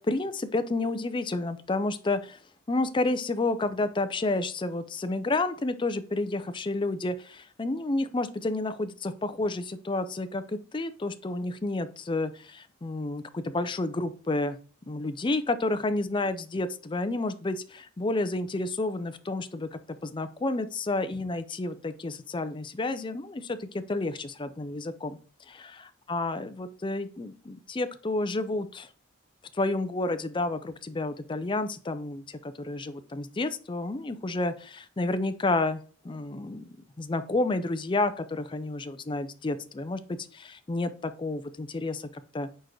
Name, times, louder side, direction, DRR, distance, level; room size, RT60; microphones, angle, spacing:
voice 1, 0.0-2.4 2.7-14.6 14.9-25.2 26.1-28.9 29.5-36.7 37.0-42.1 42.3-42.5, left 2 dB, 25° left, 10 dB, 0.4 m, -30 dB
4.6 x 4.4 x 4.7 m, 0.40 s
head